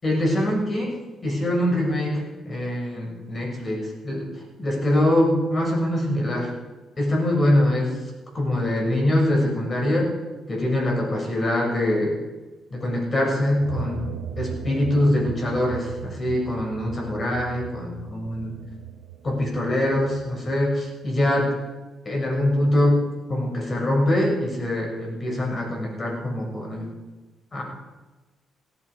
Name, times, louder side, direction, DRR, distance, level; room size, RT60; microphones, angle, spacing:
voice 1, 0.0-1.0 1.2-6.5 7.0-8.0 8.3-10.1 10.5-12.1 12.7-18.5 19.2-21.5 22.0-23.0 23.3-26.9 27.5-27.6, left 1 dB, 30° left, -1 dB, 6.7 m, -23 dB
sound 1, 13.6-20.5, right 8 dB, 90° right, 1.6 m, -38 dB
17.5 x 14.5 x 5.0 m, 1.2 s
cardioid pair, 90°, 0 cm